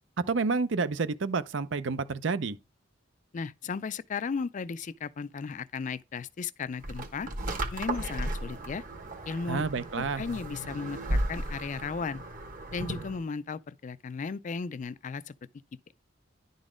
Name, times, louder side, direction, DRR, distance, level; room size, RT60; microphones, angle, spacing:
voice 1, 0.3-2.6 9.5-10.2, right 4 dB, 70° right, 0.6 m, -29 dB
voice 2, 3.3-7.3 7.7-8.8 9.3-9.6 10.0-12.2 12.7-15.3, left 5 dB, 40° left, 0.4 m, -35 dB
sound 1, 6.8-13.2, right 1 dB, 45° right, 1.3 m, -35 dB
10.5 x 4.0 x 4.9 m
head